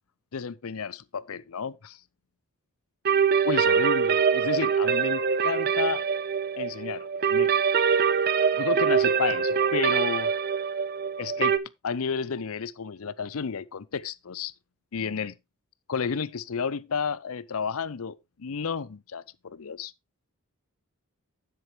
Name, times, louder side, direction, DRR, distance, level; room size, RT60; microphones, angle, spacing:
voice 1, 0.3-2.0 3.4-6.1 6.6-7.5 8.6-10.3 11.2-11.6 11.8-14.5 14.9-15.4 15.9-19.9, left 6 dB, 70° left, 0.6 m, -32 dB
sound 1, 3.0-11.6, right 6 dB, 45° right, 0.5 m, -24 dB
9.8 x 7.8 x 3.3 m
head